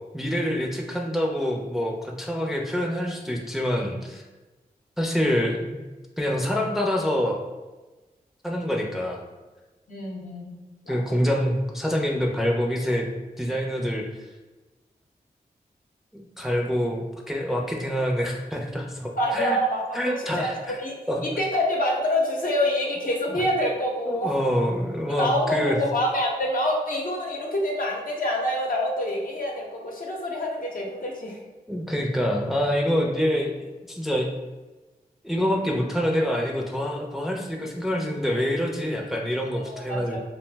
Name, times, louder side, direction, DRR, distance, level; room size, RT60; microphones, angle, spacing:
voice 1, 0.1-4.2 5.0-5.8 6.2-7.4 8.4-9.2 10.9-13.1 13.4-14.0 16.1-19.6 19.9-20.8 21.1-21.3 23.3-23.4 24.1-25.8 31.7-34.3 35.2-40.2, equal, ahead, -1 dB, 0.5 m, -26 dB
voice 2, 9.9-11.0 19.2-20.5 20.8-21.0 21.2-24.3 25.2-31.4 39.6-40.2, left 1 dB, 60° left, -2 dB, 0.8 m, -26 dB
2.5 x 2.0 x 3.3 m, 1.2 s
cardioid pair, 40°, 16 cm